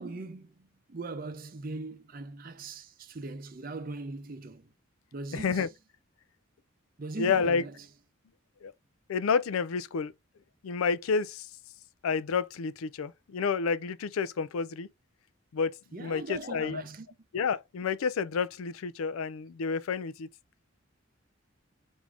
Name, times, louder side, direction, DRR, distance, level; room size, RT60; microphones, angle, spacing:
voice 1, 0.0-4.7 5.1-5.7 7.0-7.9 15.9-17.1, right 3 dB, 45° right, 0.6 m, -40 dB
voice 2, 5.3-5.7 7.2-7.6 8.6-8.7 9.1-10.1 10.6-11.5 12.0-14.9 15.5-16.8 17.3-20.3, left 5 dB, 90° left, 0.4 m, -30 dB
4.8 x 2.6 x 3.3 m
head